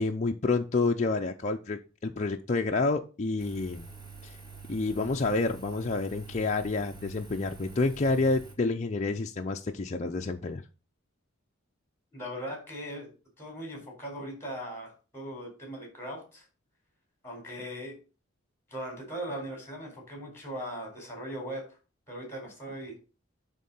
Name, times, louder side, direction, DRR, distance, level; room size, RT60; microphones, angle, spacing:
voice 1, 0.0-3.9 4.7-10.6, left 3 dB, 35° left, 2 dB, 0.5 m, -29 dB
Engine, 3.4-8.5, right 4 dB, 20° right, 2.2 m, -47 dB
voice 2, 12.1-13.1 13.4-16.4 17.2-17.9 18.7-21.6 22.1-23.0, equal, 10° left, 1 dB, 4.3 m, -39 dB
11.0 x 3.7 x 5.5 m, 0.33 s
head